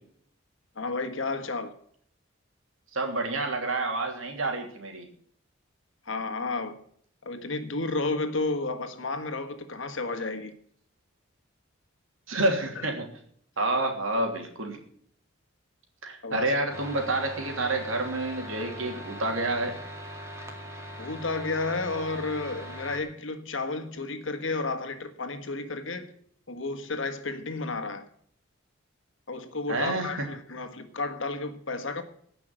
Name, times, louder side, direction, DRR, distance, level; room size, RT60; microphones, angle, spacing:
voice 1, 0.7-1.7 6.0-6.8 7.2-10.5 12.7-12.9 16.2-16.5 21.0-26.1 26.5-28.0 29.3-32.0, left 3 dB, 70° left, 1.6 m, -32 dB
voice 2, 2.9-5.1 12.3-13.0 13.6-14.8 16.0-19.7 29.7-30.1, right 2 dB, 80° right, 3.0 m, -28 dB
sound 1, 16.7-23.0, equal, 15° right, 2.1 m, -41 dB
16.5 x 6.0 x 8.9 m
head